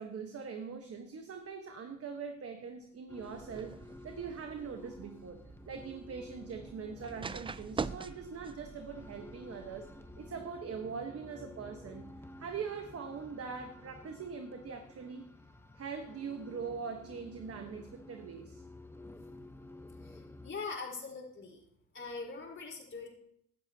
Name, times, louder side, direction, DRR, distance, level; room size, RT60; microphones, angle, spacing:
voice 1, 0.0-3.8 4.0-9.9 10.2-15.3 15.7-18.6, right 6 dB, 50° right, 4 dB, 1.3 m, -42 dB
sound 1, 3.1-20.5, left 2 dB, 10° left, 1.0 m, -52 dB
sound 2, 3.2-10.4, right 5 dB, 20° right, 0.4 m, -45 dB
voice 2, 20.0-21.6 21.9-23.1, left 4 dB, 40° left, -1 dB, 4.4 m, -42 dB
16.0 x 12.0 x 2.9 m, 0.71 s
cardioid pair, 90°, 30 cm